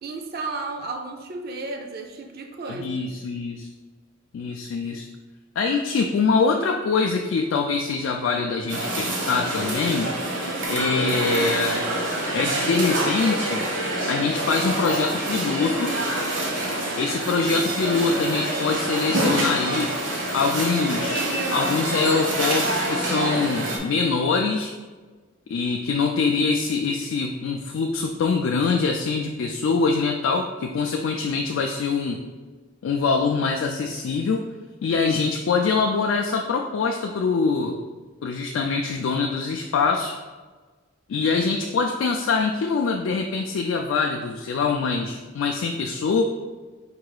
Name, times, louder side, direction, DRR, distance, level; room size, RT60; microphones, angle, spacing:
voice 1, 0.0-3.0, right 3 dB, 50° right, 4 dB, 0.4 m, -33 dB
voice 2, 2.7-3.7 4.3-5.1 5.6-10.1 10.7-11.8 12.3-13.6 14.1-15.9 17.0-19.9 20.3-21.2 21.5-24.7 25.5-32.2 32.8-34.4 34.8-37.8 38.2-40.1 41.1-46.2, left 4 dB, 85° left, 3 dB, 0.3 m, -24 dB
sound 1, 8.7-23.8, right 1 dB, 70° right, 0.9 m, -26 dB
4.6 x 2.3 x 4.8 m, 1.4 s
head